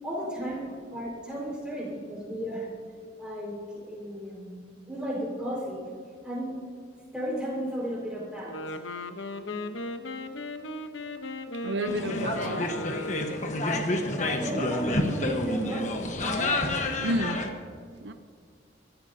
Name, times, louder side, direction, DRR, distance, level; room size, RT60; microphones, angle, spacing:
voice 1, 0.0-2.7 3.2-5.8 6.2-6.5 7.1-8.7 14.4-16.2, equal, 5° right, -4 dB, 4.7 m, -34 dB
Wind instrument woodwind instrument, 8.4-13.7, left 2 dB, 85° left, 1.0 m, -37 dB
voice 2, 11.5-12.7 17.0-17.4 18.0-18.1, right 1 dB, 70° right, 8 dB, 0.6 m, -31 dB
sound 1, 11.8-17.5, left 1 dB, 40° left, 1.2 m, -29 dB
25.0 x 14.0 x 2.8 m, 2.1 s
head